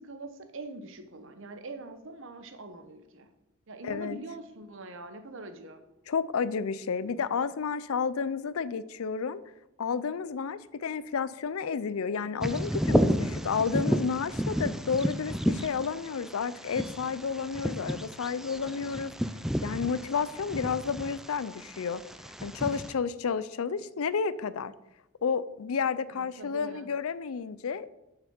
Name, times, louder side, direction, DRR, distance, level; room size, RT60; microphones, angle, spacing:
voice 1, 0.0-3.3 3.7-5.8 26.1-26.9, right 2 dB, 60° right, 8 dB, 1.0 m, -43 dB
voice 2, 3.8-4.2 6.1-9.4 9.8-19.1 19.6-22.0 22.4-24.7 25.2-27.9, left 6 dB, 80° left, 17 dB, 0.5 m, -31 dB
Bird vocalization bird call bird song, 12.4-22.9, equal, ahead, 0.4 m, -32 dB
7.2 x 5.9 x 6.9 m, 0.92 s
head